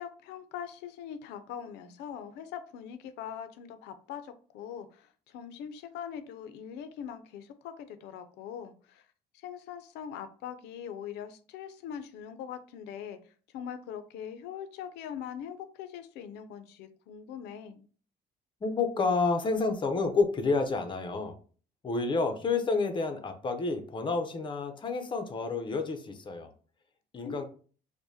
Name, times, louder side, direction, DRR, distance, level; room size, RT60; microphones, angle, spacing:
voice 1, 0.0-9.0 9.4-13.2 13.5-17.8 27.2-27.4, left 8 dB, 85° left, 10 dB, 0.5 m, -42 dB
voice 2, 18.6-21.3 21.8-26.5 27.1-27.4, left 4 dB, 30° left, 7 dB, 0.6 m, -29 dB
4.7 x 2.2 x 2.7 m, 0.42 s
cardioid pair, 110°, 17 cm